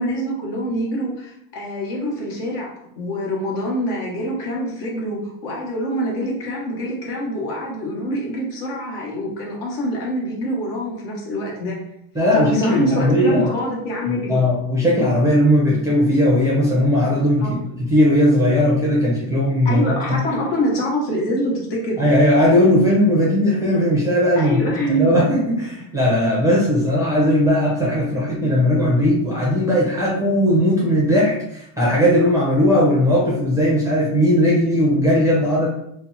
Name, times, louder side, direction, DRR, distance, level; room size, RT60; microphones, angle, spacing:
voice 1, 0.0-11.8 12.3-14.4 17.4-17.6 19.6-22.0 24.4-25.2, equal, 55° left, -3 dB, 1.2 m, -25 dB
voice 2, 12.2-13.5 14.1-20.2 22.0-24.6 24.9-35.7, equal, 5° right, -5 dB, 0.5 m, -18 dB
2.8 x 2.1 x 3.8 m, 0.77 s
cardioid pair, 135°, 49 cm